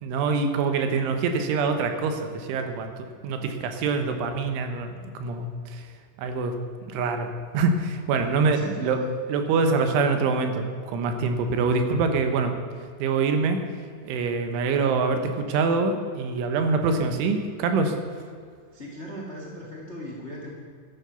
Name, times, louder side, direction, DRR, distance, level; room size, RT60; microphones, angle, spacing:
voice 1, 0.0-2.9 3.2-4.9 5.2-5.9 6.2-6.6 6.9-7.3 7.5-9.0 9.3-10.7 10.9-12.5 13.0-13.6 14.1-18.0, right 4 dB, 75° right, 6 dB, 3.4 m, -25 dB
voice 2, 8.2-9.1 18.7-20.5, left 1 dB, 65° left, -2 dB, 0.6 m, -38 dB
14.0 x 10.5 x 7.0 m, 2.2 s
omnidirectional pair, 5.9 m